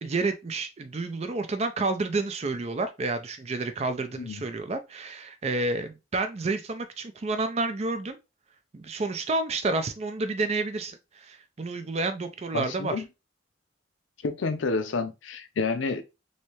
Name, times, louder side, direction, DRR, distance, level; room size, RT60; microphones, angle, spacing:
voice 1, 0.0-8.2 8.7-13.0, right 3 dB, 35° right, 0.4 m, -30 dB
voice 2, 12.5-13.0 14.2-16.0, left 4 dB, 90° left, 0.5 m, -29 dB
3.2 x 2.7 x 2.9 m
head